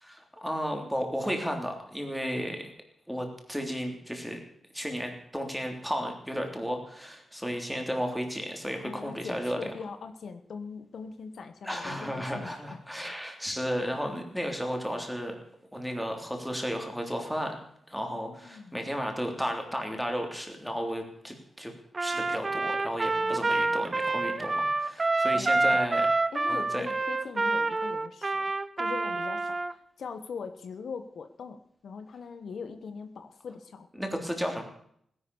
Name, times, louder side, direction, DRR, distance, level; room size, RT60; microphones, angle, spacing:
voice 1, 0.0-2.6 3.1-4.4 4.7-9.6 11.6-15.4 15.7-17.5 17.9-21.7 22.0-26.1 26.5-26.9 34.0-34.6, equal, ahead, 3 dB, 3.3 m, -33 dB
voice 2, 8.8-12.8 18.1-18.8 23.2-23.7 25.3-25.8 26.3-28.5 28.8-33.9, left 5 dB, 70° left, 9 dB, 1.2 m, -41 dB
Trumpet, 21.9-29.7, right 3 dB, 25° right, 0.9 m, -27 dB
17.5 x 11.0 x 7.0 m, 0.68 s
wide cardioid pair, 140°, 0 cm